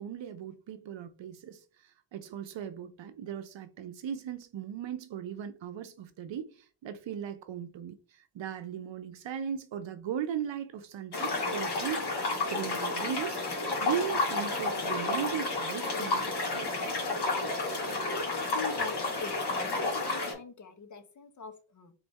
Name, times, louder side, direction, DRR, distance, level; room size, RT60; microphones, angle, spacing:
voice 1, 0.0-12.1 12.5-13.4 13.8-16.7, right 8 dB, 80° right, 0.6 m, -38 dB
sound 1, 11.1-20.3, left 3 dB, 60° left, 1.9 m, -31 dB
voice 2, 18.3-21.9, left 6 dB, 40° left, 0.8 m, -43 dB
4.1 x 3.8 x 3.5 m
wide cardioid pair, 165°, 45 cm